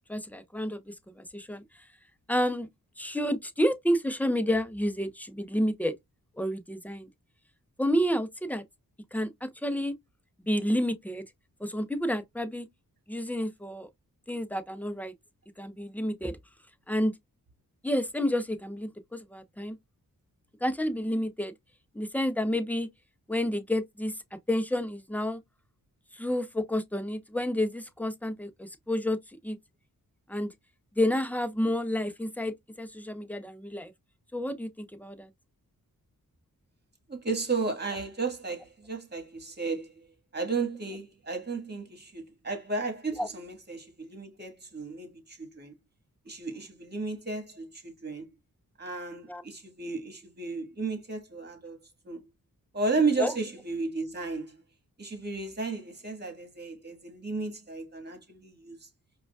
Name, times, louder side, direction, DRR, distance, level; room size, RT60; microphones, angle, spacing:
voice 1, 0.1-1.6 2.3-2.7 3.0-5.9 6.4-7.1 7.8-8.6 9.1-10.0 10.4-11.2 11.6-12.7 13.1-13.9 14.3-15.1 15.6-16.4 16.9-17.1 17.8-19.8 20.6-21.5 21.9-22.9 23.3-24.2 24.5-25.4 26.1-29.2 29.4-29.6 30.3-30.5 31.0-33.9 34.3-35.3 43.2-43.3 49.3-49.4 53.2-53.3, equal, 5° left, 0.5 m, -30 dB
voice 2, 37.1-40.1 40.3-45.7 46.2-48.3 48.8-51.8 52.0-52.2 52.7-54.6 55.0-58.9, right 3 dB, 30° right, 1.6 m, -33 dB
4.9 x 2.3 x 2.3 m
cardioid pair, 65°, 36 cm